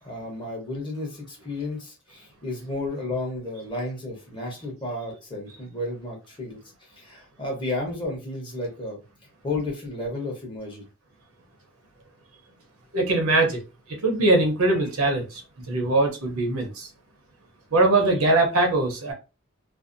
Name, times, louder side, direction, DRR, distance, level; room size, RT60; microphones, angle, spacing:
voice 1, 0.0-9.0 9.4-10.8, left 2 dB, 20° left, 0.9 m, -32 dB
voice 2, 12.9-13.6 13.9-15.4 15.7-16.9 17.7-19.1, right 2 dB, 75° right, 0.8 m, -21 dB
2.6 x 2.0 x 2.5 m
head